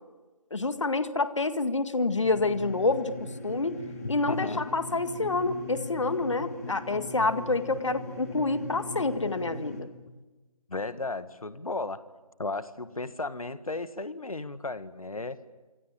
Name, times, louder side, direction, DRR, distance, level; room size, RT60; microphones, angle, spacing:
voice 1, 0.5-3.1 3.4-3.8 4.1-9.9, left 3 dB, 50° left, 11 dB, 1.9 m, -28 dB
sound 1, 2.2-9.8, left 2 dB, 25° left, 2.9 m, -40 dB
voice 2, 4.0-4.6 10.7-12.0 12.4-15.4, left 3 dB, 65° left, 13 dB, 1.8 m, -34 dB
26.0 x 26.0 x 8.8 m, 1.2 s
figure-of-eight pair, 165°, 19 cm